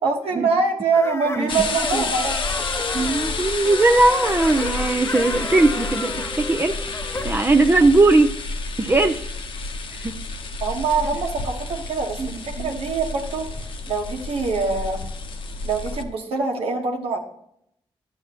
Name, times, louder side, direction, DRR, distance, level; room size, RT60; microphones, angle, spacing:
voice 1, 0.0-2.4 2.8-3.1 10.6-13.5 13.9-15.0 15.6-17.2, right 4 dB, 85° right, 2 dB, 1.4 m, -24 dB
sound 1, 0.9-7.5, left 2 dB, 25° left, 0.7 m, -32 dB
sound 2, 1.5-16.0, left 3 dB, 65° left, 0.9 m, -30 dB
voice 2, 2.9-6.9 7.2-8.3 8.8-9.3 10.0-10.1 12.2-12.8, right 2 dB, 25° right, 5 dB, 0.6 m, -19 dB
11.0 x 7.1 x 3.0 m, 0.73 s
cardioid pair, 60°, 10 cm